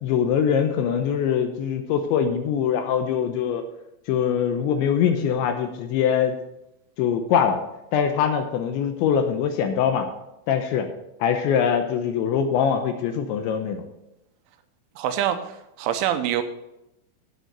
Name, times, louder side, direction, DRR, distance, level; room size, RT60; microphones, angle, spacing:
voice 1, 0.0-3.6 4.1-6.4 7.0-7.6 7.9-10.1 10.5-10.9 11.2-13.8, left 8 dB, 75° left, 6 dB, 2.9 m, -23 dB
voice 2, 15.0-16.4, right 10 dB, 80° right, 8 dB, 3.0 m, -25 dB
9.2 x 8.6 x 6.7 m, 0.88 s
omnidirectional pair, 5.8 m